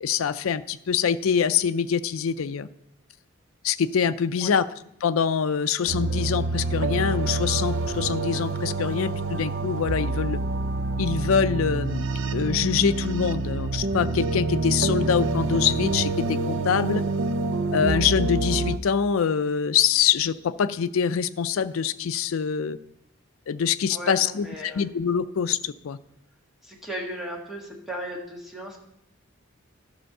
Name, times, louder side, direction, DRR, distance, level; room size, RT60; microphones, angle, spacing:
voice 1, 0.0-2.7 3.6-4.7 5.0-10.4 11.0-12.1 12.3-17.0 17.7-22.8 23.5-26.0, left 7 dB, 85° left, 14 dB, 0.4 m, -24 dB
sound 1, 5.9-18.8, right 3 dB, 65° right, 0.5 m, -27 dB
voice 2, 23.9-24.8 26.6-28.8, equal, ahead, -2 dB, 1.7 m, -36 dB
11.5 x 4.4 x 6.6 m, 0.78 s
head